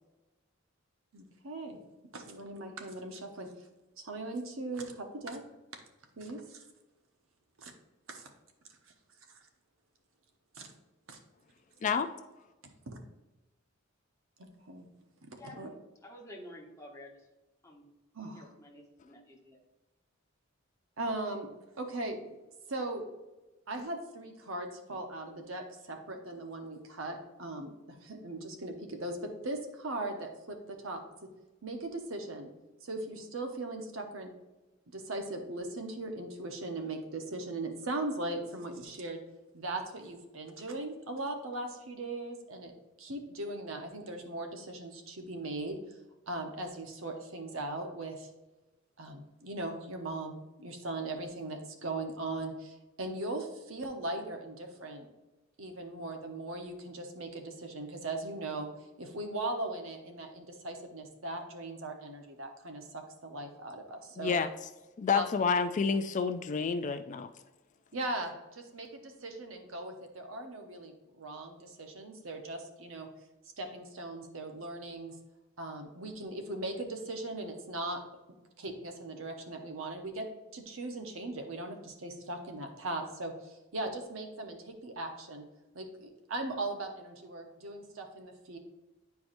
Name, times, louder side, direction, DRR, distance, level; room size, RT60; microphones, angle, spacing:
voice 1, 1.1-1.8 2.1-3.5 4.0-5.4 6.2-6.6 7.6-7.7 8.1-8.3 9.3-9.4 10.5-10.7 11.1-11.2 12.9-13.0 14.4-14.9 15.2-15.7 18.1-18.5 21.0-21.5 21.8-22.2 22.7-23.1 23.7-31.0 31.6-32.5 32.8-34.3 34.9-39.2 39.5-42.7 43.0-45.8 46.3-48.3 49.0-55.1 55.6-58.7 59.0-64.3 65.1-65.2 67.9-73.1 73.6-75.1 75.6-78.0 78.6-80.3 80.5-85.4 85.7-88.6, right 2 dB, 80° right, 4 dB, 1.0 m, -39 dB
voice 2, 15.4-17.1 17.6-17.8 18.3-19.6, left 1 dB, 15° left, -1 dB, 1.1 m, -50 dB
voice 3, 64.2-64.5 65.0-67.3, left 5 dB, 35° left, 10 dB, 0.3 m, -29 dB
9.9 x 4.6 x 2.6 m, 1.1 s
head